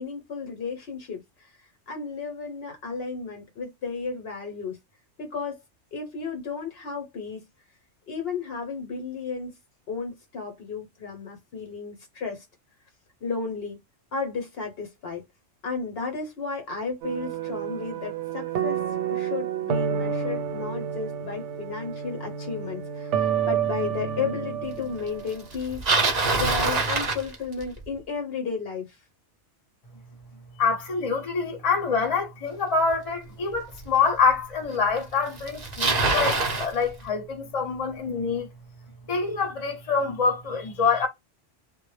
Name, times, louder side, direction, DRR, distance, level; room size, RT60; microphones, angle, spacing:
voice 1, 0.0-1.5 1.9-4.8 5.2-5.6 5.9-7.5 8.1-9.5 9.9-12.5 13.2-13.8 14.1-15.2 15.6-18.8 19.1-25.8 26.3-29.0, left 5 dB, 60° left, 0.9 m, -33 dB
sound 1, 17.0-25.4, right 8 dB, 85° right, 0.9 m, -29 dB
Bicycle, 25.5-27.9 32.9-33.0 33.8-33.9 35.0-35.1 35.3-36.7, right 3 dB, 45° right, 0.6 m, -24 dB
voice 2, 30.6-38.5 39.1-41.1, left 5 dB, 35° left, 0.8 m, -25 dB
2.0 x 2.0 x 3.1 m
omnidirectional pair, 1.2 m